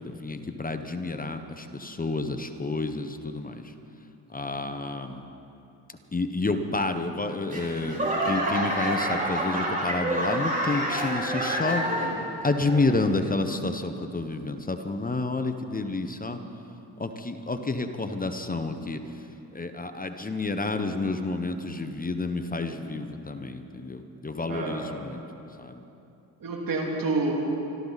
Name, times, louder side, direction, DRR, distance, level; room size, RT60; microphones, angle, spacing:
voice 1, 0.0-3.7 4.3-5.2 6.1-8.0 8.2-11.9 12.4-16.4 17.0-19.0 19.5-25.2 25.6-25.8, left 3 dB, 20° left, 7 dB, 1.2 m, -29 dB
Laughter / Clapping / Crowd, 7.5-12.3 12.6-13.1 13.7-13.8, right 1 dB, 20° right, 3.9 m, -28 dB
voice 2, 24.5-25.0 26.4-27.3, right 3 dB, 50° right, 0 dB, 2.6 m, -28 dB
25.5 x 13.5 x 4.2 m, 2.8 s
supercardioid pair, 70°, 43 cm